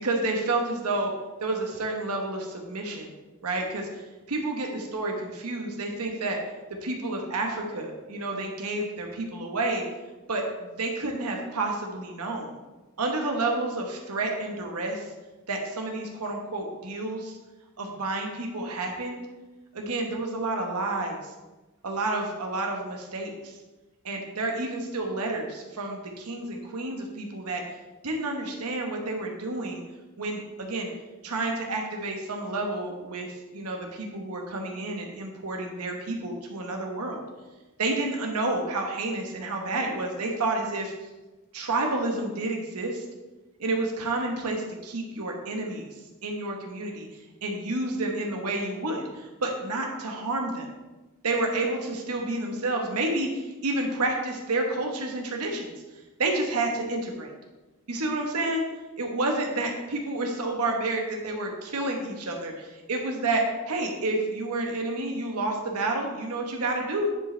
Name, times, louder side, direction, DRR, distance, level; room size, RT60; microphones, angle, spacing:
voice 1, 0.0-1.1 1.4-3.1 3.4-6.4 6.8-9.8 10.3-12.6 13.0-15.0 15.5-17.4 17.8-19.2 19.7-21.2 21.8-23.6 24.0-27.6 28.0-29.8 30.2-30.9 31.2-37.2 37.8-40.9 41.5-43.0 43.6-45.9 46.2-47.1 47.4-50.7 51.2-55.7 56.2-57.3 57.9-58.7 59.0-67.1, right 2 dB, 85° right, 1 dB, 1.2 m, -30 dB
10.0 x 5.0 x 3.3 m, 1.1 s
head